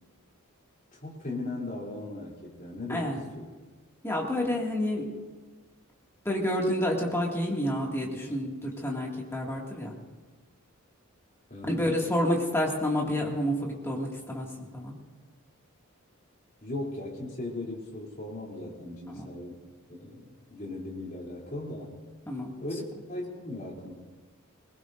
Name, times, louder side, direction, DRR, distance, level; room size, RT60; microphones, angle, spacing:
voice 1, 0.9-3.5 11.5-11.8 16.6-19.6 19.9-21.9 22.6-22.8 23.1-23.9, left 2 dB, 40° left, -3 dB, 3.2 m, -38 dB
voice 2, 2.9-3.2 4.0-5.0 6.3-9.9 11.6-14.5 14.7-14.9 19.1-19.3 22.3-22.5, left 1 dB, 10° left, -2 dB, 2.2 m, -29 dB
21.5 x 20.5 x 2.6 m, 1.3 s
head